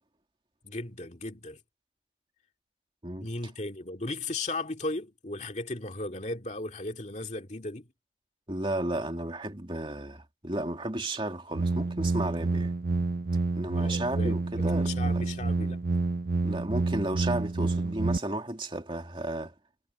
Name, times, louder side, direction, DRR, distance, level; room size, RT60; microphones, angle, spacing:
voice 1, 0.6-1.6 3.2-7.9 13.7-15.8, left 2 dB, 40° left, 2.4 m, -36 dB
voice 2, 8.5-12.7 13.6-15.2 16.4-19.5, right 1 dB, 25° right, 2.6 m, -33 dB
sound 1, 11.5-18.2, right 3 dB, 50° right, 0.6 m, -28 dB
head